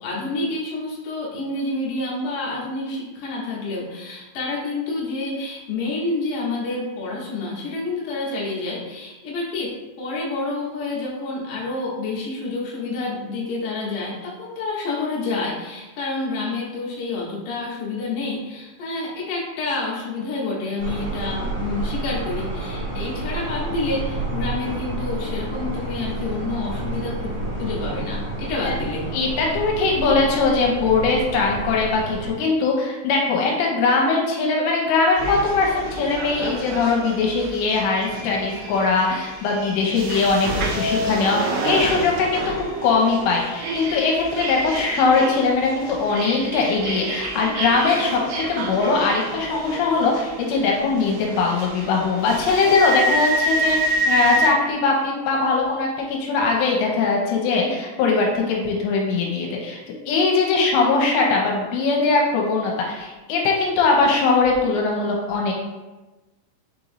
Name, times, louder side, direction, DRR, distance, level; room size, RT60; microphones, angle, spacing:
voice 1, 0.0-29.1, left 3 dB, 70° left, -5 dB, 1.9 m, -28 dB
sound 1, 20.8-32.3, right 2 dB, 60° right, 1.8 m, -30 dB
voice 2, 29.1-59.8 60.1-65.5, left 4 dB, 85° left, -1 dB, 2.8 m, -21 dB
sound 2, 35.2-54.5, right 2 dB, 75° right, 2.4 m, -28 dB
6.3 x 3.0 x 2.6 m, 1.1 s
omnidirectional pair, 5.1 m